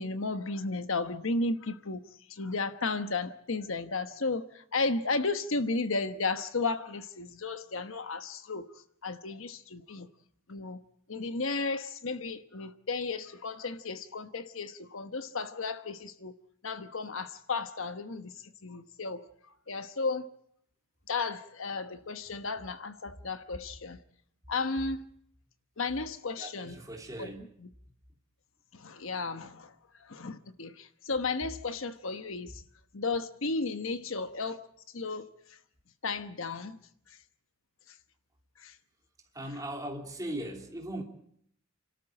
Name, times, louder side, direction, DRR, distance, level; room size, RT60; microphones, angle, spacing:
voice 1, 0.0-2.0 2.3-8.7 9.0-10.1 10.5-10.8 11.1-16.3 16.6-18.3 18.6-19.3 19.7-20.3 21.1-24.0 24.5-25.0 25.8-26.8 27.2-27.3 28.7-29.7 30.0-32.6 32.9-34.7 34.9-35.6 36.0-36.8 37.1-37.2 37.9-38.0 38.6-38.8, left 3 dB, 65° left, 1.1 m, -34 dB
voice 2, 26.4-27.4 27.8-27.9 39.3-41.0, right 1 dB, 15° right, 3.1 m, -39 dB
29.0 x 13.0 x 8.7 m
head